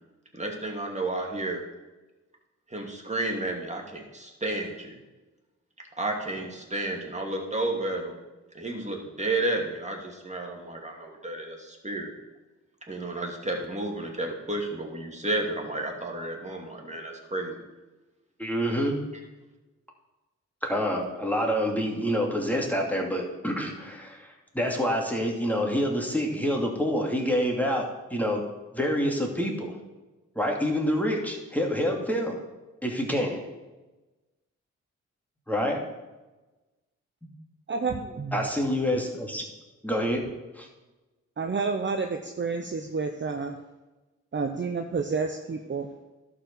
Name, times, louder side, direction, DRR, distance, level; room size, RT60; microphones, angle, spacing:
voice 1, 0.3-1.6 2.7-5.0 6.0-8.2 8.5-12.1 12.9-17.6, right 2 dB, 20° right, 0 dB, 2.6 m, -32 dB
voice 2, 18.4-19.0 20.6-28.4 28.7-29.8 30.4-32.4 32.8-33.4 35.5-35.8 38.3-39.4 39.8-40.2 40.6-40.7, equal, 5° left, 0 dB, 2.4 m, -27 dB
voice 3, 37.7-38.4 41.4-43.6 44.3-45.9, right 4 dB, 35° right, 5 dB, 0.9 m, -30 dB
11.5 x 4.8 x 6.8 m, 1.1 s
supercardioid pair, 40°, 31 cm